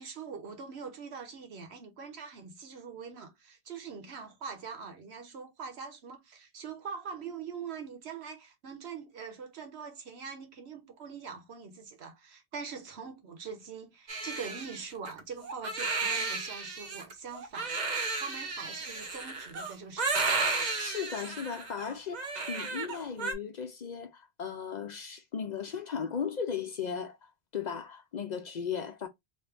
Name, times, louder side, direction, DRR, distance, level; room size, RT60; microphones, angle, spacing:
voice 1, 0.0-20.5, right 6 dB, 80° right, 1.2 m, -43 dB
Crying sobbing, 14.1-23.3, right 3 dB, 45° right, 0.9 m, -33 dB
voice 2, 20.8-27.2 27.5-29.1, left 7 dB, 55° left, 0.6 m, -36 dB
3.1 x 2.7 x 3.3 m
omnidirectional pair, 1.1 m